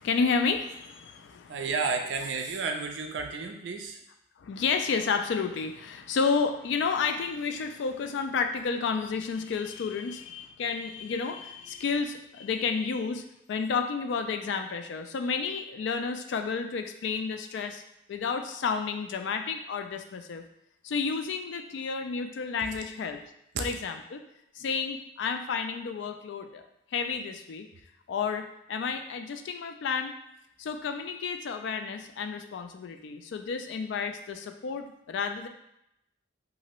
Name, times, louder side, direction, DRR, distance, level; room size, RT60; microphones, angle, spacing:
voice 1, 0.0-1.7 4.4-13.2 13.5-17.8 18.1-20.4 20.8-23.2 23.6-24.2 24.5-26.6 26.9-27.7 28.1-30.1 30.6-35.5, left 5 dB, 70° left, 7 dB, 0.3 m, -31 dB
voice 2, 1.5-4.0, right 4 dB, 70° right, 4 dB, 0.4 m, -31 dB
2.8 x 2.5 x 3.0 m, 0.82 s
head